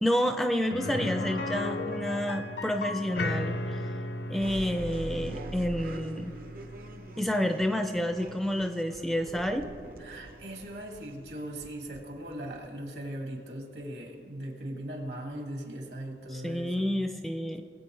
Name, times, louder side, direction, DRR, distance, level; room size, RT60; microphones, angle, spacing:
voice 1, 0.0-3.8 4.3-6.3 7.2-9.7 16.3-17.6, equal, ahead, 6 dB, 0.4 m, -29 dB
sound 1, 0.7-10.5 10.8-10.9 13.3-13.4, left 2 dB, 65° left, 0.6 m, -37 dB
sound 2, 4.4-13.0, right 2 dB, 55° right, 0.7 m, -44 dB
voice 2, 10.0-16.9, right 1 dB, 70° right, 1 dB, 2.2 m, -39 dB
21.0 x 8.5 x 3.2 m, 2.2 s
head